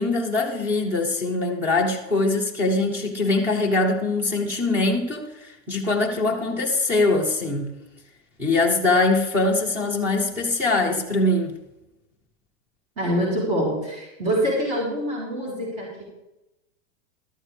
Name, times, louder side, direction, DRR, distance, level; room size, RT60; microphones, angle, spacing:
voice 1, 0.0-7.7 8.4-11.6, left 2 dB, 5° right, 2 dB, 0.9 m, -22 dB
voice 2, 13.0-16.0, equal, 35° right, -4 dB, 3.9 m, -25 dB
13.0 x 12.5 x 3.3 m, 0.95 s
supercardioid pair, 180°, 38 cm